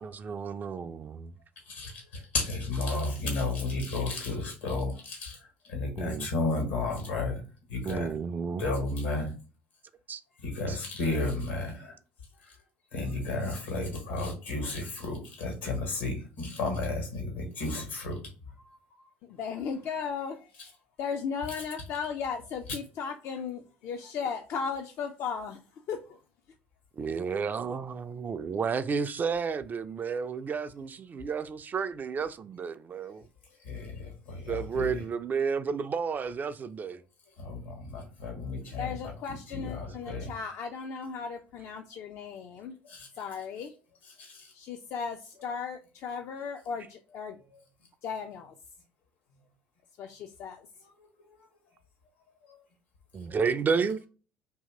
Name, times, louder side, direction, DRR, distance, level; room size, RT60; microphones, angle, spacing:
voice 1, 0.0-1.3 6.0-6.3 7.9-8.7 10.1-10.2 10.7-10.8 27.0-33.3 34.5-37.0 53.1-54.1, right 5 dB, 30° right, 0.3 m, -31 dB
voice 2, 1.7-5.4 5.7-7.4 7.7-8.1 8.6-9.3 10.4-11.9 12.4-12.5 12.9-18.2 33.6-35.0 37.4-40.3 42.8-43.1 44.2-44.5, left 2 dB, 75° left, 1.4 m, -33 dB
voice 3, 19.3-20.7 21.0-25.6 25.9-26.0 38.8-42.8 43.2-43.7 44.5-47.4 48.0-48.5 50.0-50.7, left 6 dB, 50° left, 0.4 m, -36 dB
2.8 x 2.7 x 3.6 m
figure-of-eight pair, 55°, 6 cm